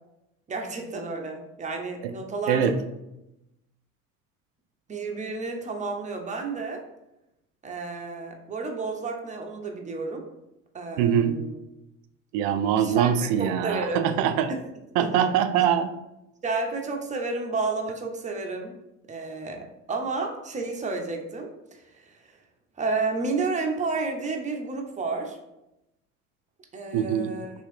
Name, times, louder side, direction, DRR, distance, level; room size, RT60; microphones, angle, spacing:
voice 1, 0.5-2.7 4.9-6.8 7.6-10.2 10.7-11.6 12.8-14.0 14.5-14.6 15.0-15.3 16.4-18.8 19.1-22.3 22.8-25.4 26.7-27.5, right 3 dB, 20° right, 2 dB, 0.7 m, -31 dB
voice 2, 2.5-2.8 11.0-11.4 12.3-14.5 15.0-15.9 26.9-27.3, right 8 dB, 65° right, 10 dB, 0.5 m, -23 dB
3.0 x 2.9 x 3.2 m, 0.90 s
hypercardioid pair, 75°, 39 cm